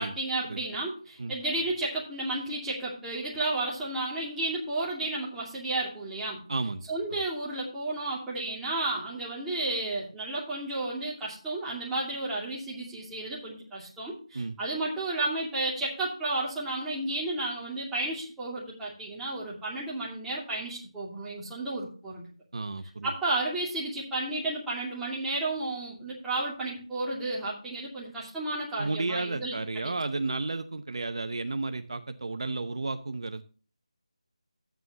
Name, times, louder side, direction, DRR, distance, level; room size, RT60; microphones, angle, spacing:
voice 1, 0.0-6.4 6.9-22.2 23.0-29.6, right 2 dB, 5° right, -7 dB, 2.6 m, -32 dB
voice 2, 6.5-6.9 14.3-14.6 22.5-23.1 28.8-33.4, right 3 dB, 55° right, 9 dB, 0.9 m, -32 dB
12.5 x 9.2 x 2.9 m, 0.38 s
figure-of-eight pair, 170°, 3 cm